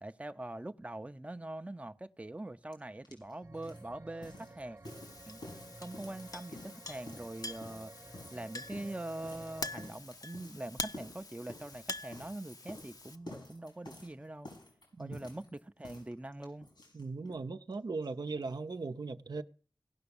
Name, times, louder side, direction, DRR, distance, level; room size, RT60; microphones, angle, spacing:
voice 1, 0.0-4.8 5.3-5.4 5.8-7.9 8.3-14.5 15.0-16.7, right 1 dB, 20° right, 0.6 m, -43 dB
sound 1, 2.7-2.8 3.1-17.4 17.7-17.8 18.0-18.1 18.4-18.5, left 1 dB, 90° left, 5.5 m, -51 dB
sound 2, 3.4-9.9, right 2 dB, 40° right, 1.2 m, -54 dB
Chink clink, 4.8-13.2, left 2 dB, 60° left, 0.9 m, -45 dB
voice 2, 16.9-19.4, right 4 dB, 75° right, 0.7 m, -38 dB
17.5 x 5.9 x 7.0 m
wide cardioid pair, 60°, 7 cm